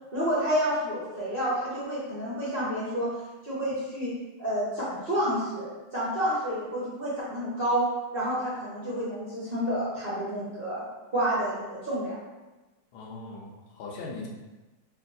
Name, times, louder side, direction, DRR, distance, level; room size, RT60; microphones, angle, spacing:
voice 1, 0.1-3.1 3.4-4.1 4.4-5.7 5.9-7.8 8.1-10.8 11.1-12.1, equal, 40° right, -10 dB, 0.9 m, -29 dB
voice 2, 12.9-14.3, left 3 dB, 75° left, -3 dB, 1.5 m, -40 dB
3.3 x 3.0 x 3.8 m, 1.1 s
omnidirectional pair, 2.3 m